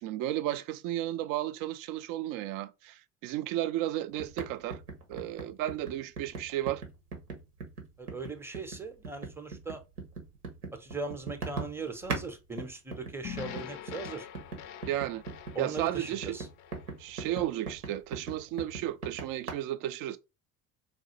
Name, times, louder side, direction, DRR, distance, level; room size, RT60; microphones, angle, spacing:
voice 1, 0.0-4.8 5.1-6.8 14.9-15.2 15.6-16.3 17.0-20.2, right 13 dB, 50° right, 0.5 m, -33 dB
sound 1, 4.2-12.3 12.6-19.5, right 4 dB, 90° right, 0.9 m, -40 dB
voice 2, 8.0-9.8 10.7-14.3 15.5-16.5, right 3 dB, 5° right, 0.7 m, -39 dB
sound 2, 13.2-17.6, left 10 dB, 40° left, 0.4 m, -45 dB
3.9 x 2.3 x 2.9 m
hypercardioid pair, 65°, 45 cm